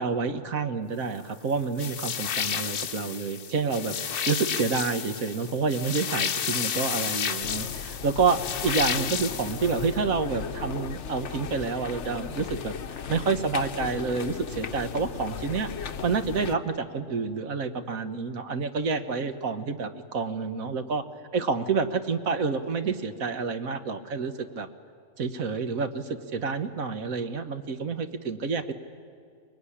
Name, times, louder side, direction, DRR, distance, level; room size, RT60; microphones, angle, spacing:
voice 1, 0.0-12.7 13.1-21.0 21.3-24.7 25.2-28.7, right 4 dB, 65° right, 8 dB, 1.6 m, -28 dB
sound 1, 1.8-10.0, left 8 dB, 90° left, 1.6 m, -31 dB
sound 2, 7.4-16.6, left 7 dB, 55° left, 1.1 m, -36 dB
24.0 x 21.0 x 10.0 m, 2.3 s
omnidirectional pair, 1.6 m